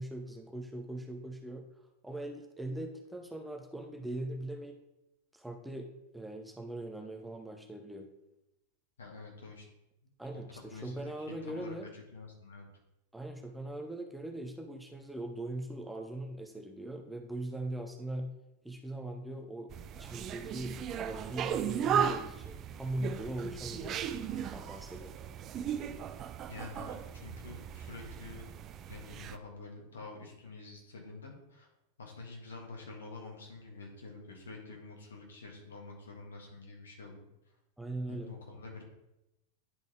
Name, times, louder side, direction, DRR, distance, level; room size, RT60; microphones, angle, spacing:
voice 1, 0.0-1.6 2.0-4.8 5.3-8.1 10.2-11.9 13.1-18.3 18.6-19.7 19.9-24.1 24.5-25.1 37.8-38.3, right 1 dB, 5° right, 3 dB, 0.7 m, -40 dB
voice 2, 9.0-9.6 10.3-10.4 10.7-12.7 26.5-28.4 28.9-31.7 32.0-37.3 38.1-38.8, left 3 dB, 70° left, 0 dB, 1.6 m, -47 dB
sound 1, 19.7-29.4, right 8 dB, 30° right, 0.3 m, -36 dB
10.0 x 3.9 x 3.4 m, 0.90 s
figure-of-eight pair, 90°, 0 cm